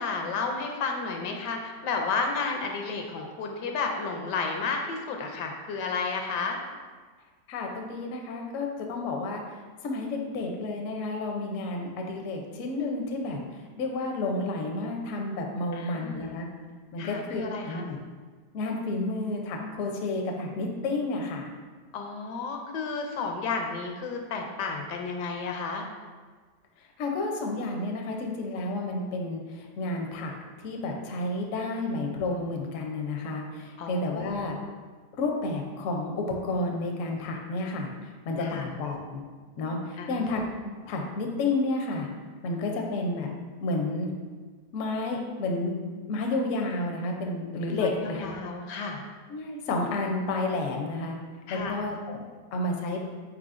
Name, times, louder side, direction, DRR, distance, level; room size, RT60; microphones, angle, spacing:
voice 1, 0.0-6.6 15.7-16.4 17.0-17.9 21.9-25.9 33.8-34.3 38.4-38.7 40.0-40.2 47.7-49.0 51.5-51.9, left 4 dB, 80° left, 3 dB, 1.2 m, -32 dB
voice 2, 7.5-9.4 9.8-13.4 13.8-16.5 16.9-18.0 18.5-21.5 27.0-30.3 30.6-34.6 35.2-37.9 38.2-39.2 39.6-42.1 42.4-43.3 43.6-44.1 44.7-45.7 46.1-48.3 49.3-51.2 51.5-52.2 52.5-53.0, left 2 dB, 65° left, 1 dB, 0.8 m, -31 dB
4.9 x 4.4 x 2.4 m, 1.5 s
omnidirectional pair, 1.8 m